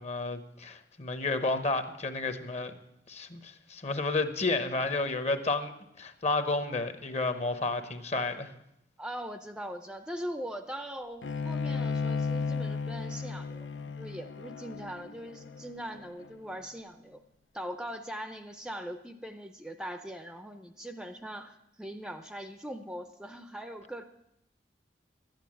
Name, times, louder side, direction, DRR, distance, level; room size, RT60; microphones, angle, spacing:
voice 1, 0.0-2.7 3.1-5.7 6.0-8.5, left 3 dB, 40° left, 10 dB, 1.0 m, -31 dB
voice 2, 9.0-17.2 17.5-24.0, equal, 5° right, 8 dB, 0.5 m, -41 dB
Bowed string instrument, 11.2-16.5, left 4 dB, 85° left, 0.5 m, -34 dB
12.0 x 9.2 x 7.6 m, 0.82 s
head